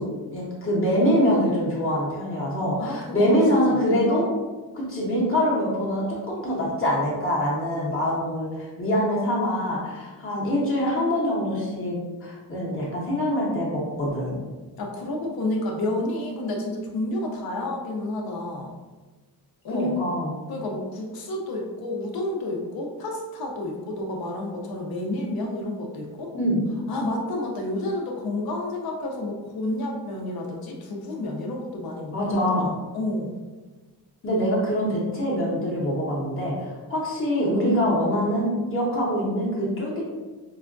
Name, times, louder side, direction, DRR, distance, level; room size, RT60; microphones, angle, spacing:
voice 1, 0.0-4.3 4.7-14.3 19.7-20.4 26.3-26.6 32.1-32.7 34.2-39.9, equal, 35° left, -6 dB, 0.9 m, -24 dB
voice 2, 2.8-3.4 3.7-3.8 14.8-18.7 19.6-20.0 20.5-26.3 26.9-33.4, left 1 dB, 65° left, 1 dB, 0.7 m, -30 dB
4.7 x 2.2 x 2.5 m, 1.3 s
wide cardioid pair, 140°, 40 cm